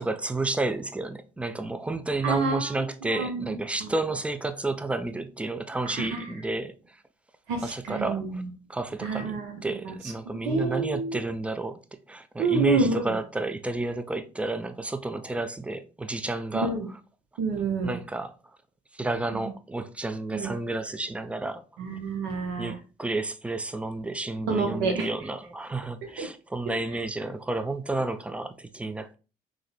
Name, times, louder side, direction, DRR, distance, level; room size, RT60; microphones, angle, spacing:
voice 1, 0.0-6.7 7.6-8.4 8.7-11.8 12.1-16.7 17.8-18.3 19.0-21.6 22.6-29.1, right 2 dB, 5° right, 0.3 m, -31 dB
voice 2, 2.2-2.7 3.1-3.5 3.8-3.9 5.8-6.3 7.5-8.4 9.0-9.9 10.3-11.2 12.4-13.0 16.5-16.9 17.4-18.0 19.3-19.5 20.3-20.5 21.8-22.8 24.5-25.1 26.0-26.3, right 4 dB, 70° right, 0.6 m, -28 dB
3.7 x 2.0 x 2.4 m
hypercardioid pair, 55°, 19 cm